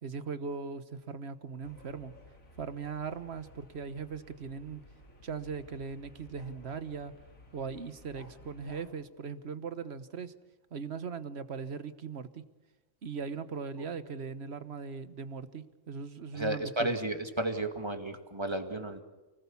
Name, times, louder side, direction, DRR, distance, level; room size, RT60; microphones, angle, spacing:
voice 1, 0.0-2.1 2.6-4.8 5.2-7.1 7.5-10.3 10.7-12.4 13.0-16.9, right 5 dB, 55° right, 12 dB, 1.4 m, -39 dB
sound 1, 1.6-8.9, left 2 dB, 80° left, 3.1 m, -55 dB
voice 2, 16.3-19.0, right 1 dB, 20° right, 5 dB, 2.1 m, -33 dB
29.5 x 19.5 x 7.2 m, 1.2 s
omnidirectional pair, 1.4 m